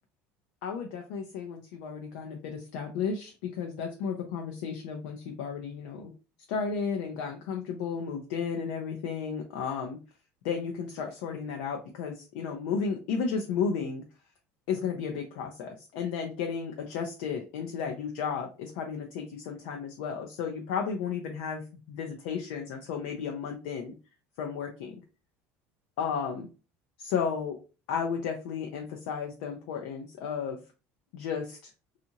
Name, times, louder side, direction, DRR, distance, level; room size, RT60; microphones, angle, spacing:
voice 1, 0.6-6.1 6.5-10.0 10.4-14.0 14.7-23.9 24.4-25.0 26.0-26.5 27.0-27.6 27.9-30.6 31.1-31.7, left 6 dB, 80° left, 3 dB, 0.5 m, -33 dB
2.8 x 2.4 x 2.7 m, 0.33 s
cardioid pair, 150°, 6 cm